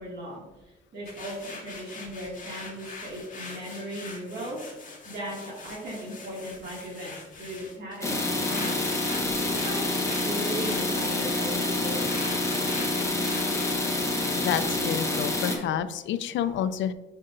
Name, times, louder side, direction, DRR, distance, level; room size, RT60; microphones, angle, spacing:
voice 1, 0.0-8.9 9.6-9.8 10.2-12.2, right 1 dB, 55° right, -5 dB, 2.2 m, -38 dB
sound 1, 1.1-13.8, left 3 dB, 40° left, 1.9 m, -42 dB
sound 2, 8.0-15.5, left 2 dB, 15° left, 1.4 m, -27 dB
voice 2, 14.4-16.9, left 9 dB, 70° left, 13 dB, 0.5 m, -29 dB
7.6 x 5.4 x 2.6 m, 1.0 s
cardioid pair, 90°, 20 cm